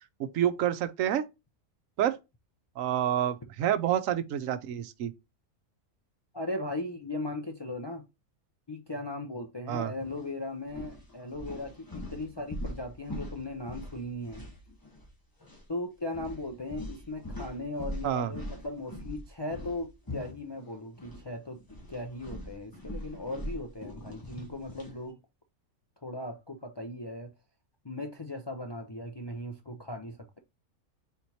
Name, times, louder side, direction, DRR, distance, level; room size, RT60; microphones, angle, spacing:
voice 1, 0.2-1.2 2.0-2.2 2.8-5.1 9.7-9.9 18.0-18.3, right 10 dB, 90° right, 1.0 m, -28 dB
voice 2, 6.3-8.0 8.7-14.4 15.7-25.2 26.0-27.3 27.8-30.4, left 2 dB, 40° left, 0.3 m, -38 dB
sound 1, 10.0-10.2 10.6-15.1 15.4-15.6 16.1-21.2 21.6-25.0, left 1 dB, 15° left, 1.1 m, -42 dB
4.4 x 4.2 x 2.7 m
omnidirectional pair, 1.3 m